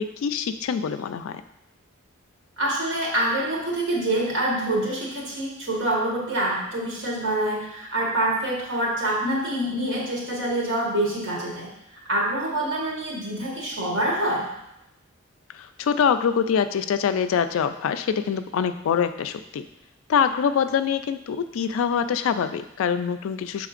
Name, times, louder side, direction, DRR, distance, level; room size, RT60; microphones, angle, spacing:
voice 1, 0.0-1.4 15.5-19.6 20.1-23.7, left 7 dB, 70° left, 11 dB, 0.3 m, -24 dB
voice 2, 2.6-11.7 12.1-14.5, right 1 dB, 60° right, -4 dB, 1.4 m, -26 dB
5.8 x 3.5 x 2.5 m, 0.85 s
head